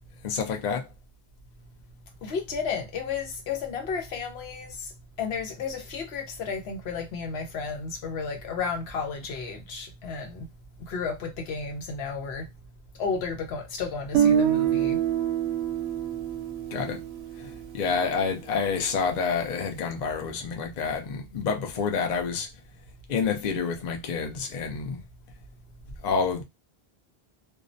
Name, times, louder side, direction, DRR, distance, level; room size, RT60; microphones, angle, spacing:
voice 1, 0.2-0.9 16.7-17.0 17.4-22.5 23.1-25.0 26.0-26.4, left 5 dB, 55° left, 0.5 m, -28 dB
voice 2, 2.2-4.9 5.2-10.5 10.9-12.5 13.0-15.0, left 5 dB, 80° left, 0.9 m, -32 dB
Guitar, 14.1-18.1, right 9 dB, 75° right, 0.8 m, -26 dB
2.4 x 2.0 x 2.5 m
omnidirectional pair, 1.1 m